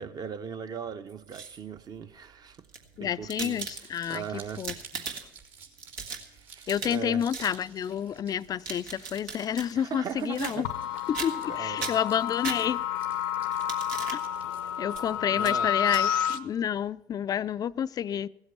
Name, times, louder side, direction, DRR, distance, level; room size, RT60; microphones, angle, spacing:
voice 1, 0.0-2.6 3.0-3.6 4.1-4.6 6.3-7.2 9.7-10.7 11.5-11.9 15.2-15.7, right 7 dB, 40° right, 0.8 m, -38 dB
sound 1, 1.1-1.8 2.5-4.1 4.5-5.4 5.8-7.0 7.3-7.5 8.4-9.7 10.3-10.9 11.1-11.5 11.8-13.0 13.5-14.2 14.9-15.0 15.4-15.5 15.9-16.0, right 5 dB, 85° right, 1.5 m, -38 dB
voice 2, 3.0-5.2 6.7-10.7 11.1-12.8 14.1-14.2 14.8-18.3, left 9 dB, 35° left, 0.4 m, -30 dB
Crumpling crinkling, 3.5-15.2, right 6 dB, 65° right, 3.0 m, -53 dB
sound 2, 10.6-16.4, left 9 dB, 85° left, 0.7 m, -30 dB
16.0 x 8.1 x 6.8 m
supercardioid pair, 85°, 11 cm